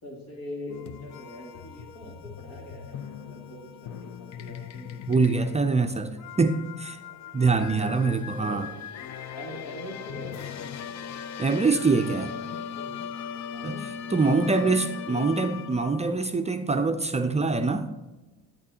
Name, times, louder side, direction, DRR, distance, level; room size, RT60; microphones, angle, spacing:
voice 1, 0.0-5.0 7.5-8.0 8.3-8.6 9.3-11.0 11.8-13.0 13.5-13.9 14.2-15.5, left 1 dB, 80° left, -1 dB, 2.5 m, -43 dB
sound 1, 0.7-16.1, left 8 dB, 50° left, 0.5 m, -39 dB
voice 2, 5.1-7.0 7.3-8.7 11.4-12.3 13.6-13.8 14.1-17.9, right 4 dB, 20° right, 6 dB, 0.4 m, -24 dB
8.6 x 8.5 x 2.8 m, 1.1 s
cardioid pair, 110°, 35 cm